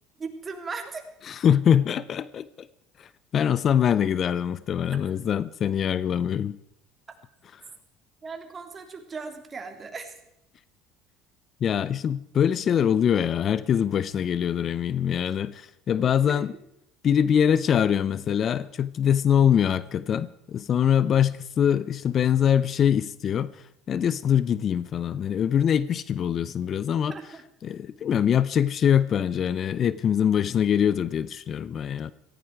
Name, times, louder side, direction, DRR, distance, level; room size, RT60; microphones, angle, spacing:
voice 1, 0.2-1.1 8.2-10.1 16.3-16.4 27.1-27.4, right 4 dB, 30° right, 3.2 m, -37 dB
voice 2, 1.3-2.7 3.0-6.6 11.6-16.5 17.0-23.5 23.9-27.1 27.6-32.1, left 9 dB, 45° left, 0.6 m, -23 dB
17.0 x 16.0 x 4.7 m
supercardioid pair, 90°, 0 cm